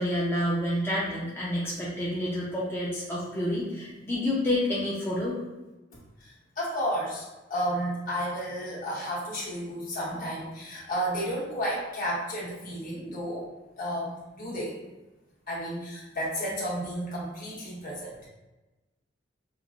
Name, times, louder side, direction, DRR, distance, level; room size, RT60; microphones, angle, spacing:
voice 1, 0.0-5.4, left 1 dB, 10° left, -7 dB, 0.5 m, -29 dB
voice 2, 6.2-13.5 13.8-14.7 15.5-18.3, equal, 50° left, -6 dB, 1.1 m, -32 dB
4.4 x 2.1 x 2.4 m, 1.1 s
head